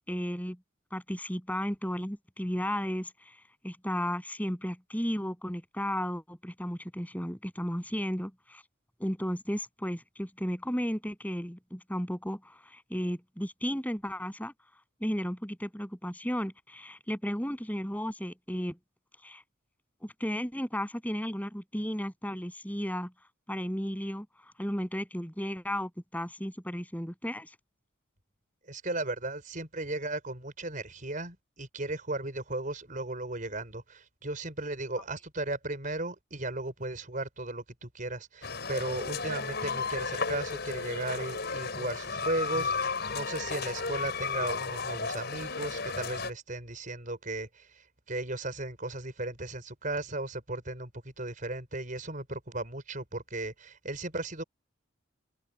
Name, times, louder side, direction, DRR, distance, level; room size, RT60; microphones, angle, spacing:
voice 1, 0.1-0.6 0.9-8.6 9.0-14.5 15.0-18.8 19.2-19.4 20.0-23.1 23.5-27.6, equal, 10° left, 7.9 m, -34 dB
voice 2, 28.7-54.4, right 2 dB, 40° right, 5.3 m, -36 dB
sound 1, 38.4-46.3, left 4 dB, 55° left, 5.7 m, -34 dB
head